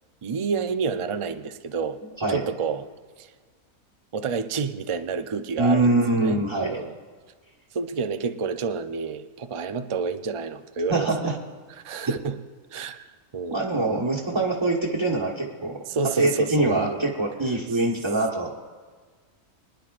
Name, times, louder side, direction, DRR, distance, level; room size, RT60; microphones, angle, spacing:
voice 1, 0.2-2.0 2.3-2.8 3.2-3.3 4.1-6.9 7.7-11.3 11.8-12.4 12.7-13.0 13.3-13.6 15.9-17.1, right 5 dB, 50° right, 9 dB, 0.3 m, -29 dB
voice 2, 5.6-6.8 10.9-11.4 13.5-15.8 16.2-18.5, right 2 dB, 20° right, -5 dB, 1.3 m, -24 dB
24.5 x 10.5 x 2.5 m, 1.5 s
omnidirectional pair, 1.5 m